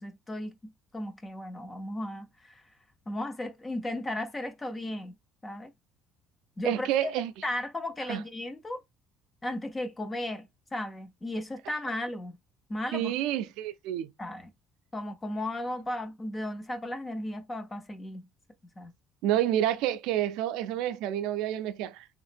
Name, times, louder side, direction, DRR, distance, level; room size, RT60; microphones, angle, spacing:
voice 1, 0.0-2.6 3.1-5.2 5.4-5.7 6.6-7.1 7.4-8.8 9.4-10.5 10.7-12.4 12.7-13.2 14.2-14.5 14.9-18.3 18.8-18.9, left 1 dB, 15° left, 0.3 m, -35 dB
voice 2, 6.6-7.3 8.1-8.2 12.9-14.1 19.2-22.1, right 12 dB, 80° right, 0.3 m, -29 dB
2.8 x 2.5 x 2.4 m
cardioid pair, 170°, 0 cm